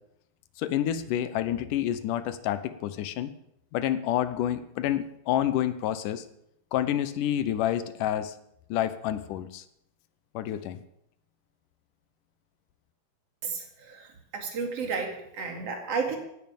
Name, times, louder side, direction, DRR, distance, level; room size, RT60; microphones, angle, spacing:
voice 1, 0.6-3.3 3.7-6.2 6.7-8.4 8.7-9.6 10.3-10.8, left 11 dB, 75° left, 12 dB, 2.0 m, -28 dB
voice 2, 13.4-16.2, right 5 dB, 45° right, 4 dB, 3.0 m, -32 dB
16.5 x 9.2 x 7.1 m, 0.78 s
omnidirectional pair, 4.5 m